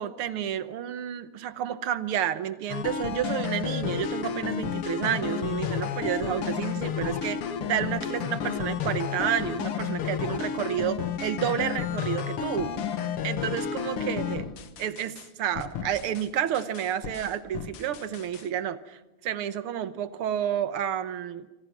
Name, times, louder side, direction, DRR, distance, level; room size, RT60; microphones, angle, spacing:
voice 1, 0.0-12.7 13.2-14.5 14.8-21.5, right 10 dB, 80° right, 13 dB, 1.9 m, -30 dB
sound 1, 2.7-15.3 15.6-16.3 16.5-18.4, left 8 dB, 80° left, 2.2 m, -31 dB
26.0 x 25.5 x 6.1 m, 1.1 s
omnidirectional pair, 2.4 m